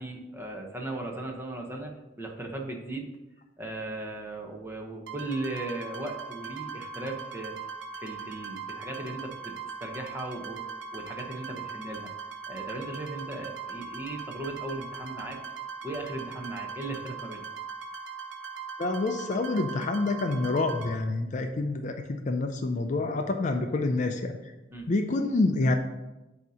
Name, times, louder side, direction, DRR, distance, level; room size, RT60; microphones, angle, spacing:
voice 1, 0.0-3.1 3.6-7.5 7.9-12.1 12.5-15.4 15.8-17.4 24.7-24.9, right 2 dB, 10° right, 1 dB, 0.8 m, -37 dB
sound 1, 5.1-20.9, right 5 dB, 65° right, 0.7 m, -40 dB
voice 2, 18.8-24.4 24.9-25.7, left 2 dB, 40° left, 5 dB, 0.4 m, -27 dB
8.0 x 2.8 x 4.9 m, 1.0 s
head